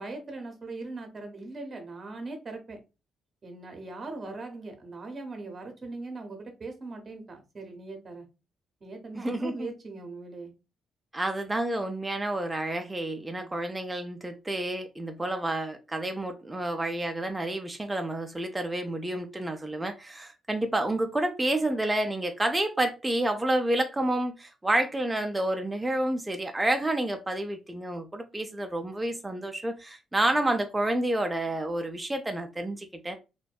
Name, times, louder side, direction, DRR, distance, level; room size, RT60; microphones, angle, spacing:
voice 1, 0.0-2.8 3.4-8.3 8.8-10.5 13.3-13.6, right 3 dB, 40° right, 0.7 m, -40 dB
voice 2, 9.1-9.7 11.1-33.2, right 1 dB, 15° right, 0.4 m, -29 dB
2.6 x 2.1 x 2.2 m
cardioid pair, 90°, 0 cm